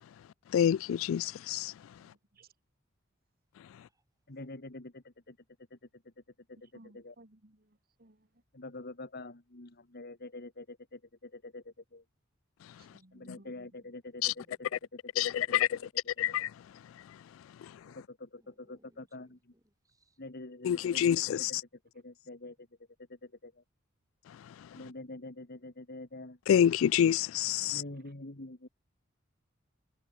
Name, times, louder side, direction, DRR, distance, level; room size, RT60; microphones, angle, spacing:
voice 1, 0.5-1.7 14.2-14.3 15.2-15.7 16.2-16.5 17.6-17.7 20.6-21.6 24.6-24.7 26.5-27.8, left 9 dB, 75° left, 0.3 m, -27 dB
voice 2, 1.9-2.5 6.7-8.4 12.8-13.7 27.8-28.1, right 1 dB, 50° right, 2.9 m, -60 dB
voice 3, 3.7-4.0 14.1-14.8 18.4-20.2, right 1 dB, 15° right, 6.6 m, -71 dB
voice 4, 4.3-5.4 5.7-6.1 6.5-7.1 8.5-12.0 13.1-15.9 16.2-16.4 17.9-19.5 20.2-21.6 21.9-22.7 23.1-23.6 24.7-26.4 27.7-28.7, left 2 dB, 50° left, 2.2 m, -46 dB
head